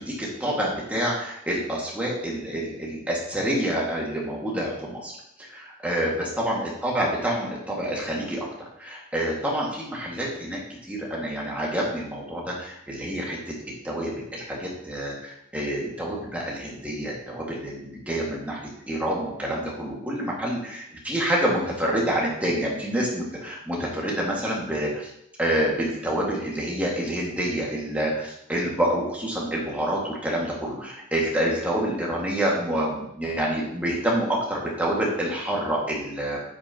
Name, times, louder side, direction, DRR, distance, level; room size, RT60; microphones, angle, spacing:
voice 1, 0.0-5.1 5.4-10.6 10.9-13.5 13.8-18.6 18.9-25.1 25.4-36.4, right 1 dB, 5° right, -4 dB, 2.0 m, -27 dB
10.5 x 6.2 x 3.0 m, 0.77 s
head